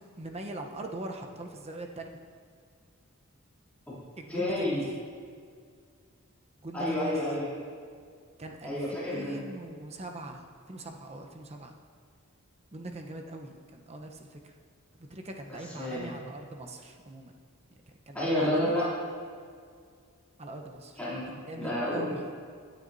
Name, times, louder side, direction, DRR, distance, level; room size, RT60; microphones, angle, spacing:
voice 1, 0.0-2.2 4.2-4.9 6.6-7.1 8.4-8.8 9.1-11.7 12.7-14.5 15.0-17.3 18.1-18.8 20.4-21.0 21.5-22.3, right 2 dB, 30° right, 3 dB, 0.8 m, -41 dB
voice 2, 4.3-4.8 6.7-7.5 8.6-9.4 15.8-16.2 18.1-18.9 21.0-22.1, left 1 dB, 5° left, -10 dB, 2.9 m, -30 dB
15.5 x 9.2 x 2.7 m, 2.1 s
head